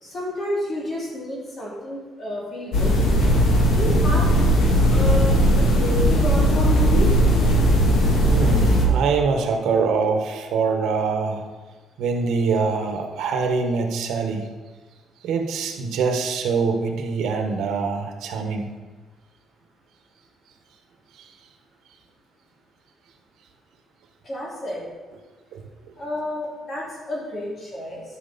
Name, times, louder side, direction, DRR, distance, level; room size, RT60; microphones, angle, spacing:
voice 1, 0.0-2.9 3.7-4.3 4.8-7.1 24.2-24.8 26.0-28.0, left 1 dB, 30° left, -4 dB, 2.9 m, -30 dB
sound 1, 2.7-8.8, equal, 70° left, 2.0 m, -18 dB
voice 2, 8.3-11.4 12.0-14.5 15.2-18.7 21.2-21.3 25.5-25.6, right 4 dB, 80° right, 5 dB, 1.3 m, -24 dB
13.0 x 6.2 x 4.2 m, 1.3 s
cardioid pair, 155°, 0 cm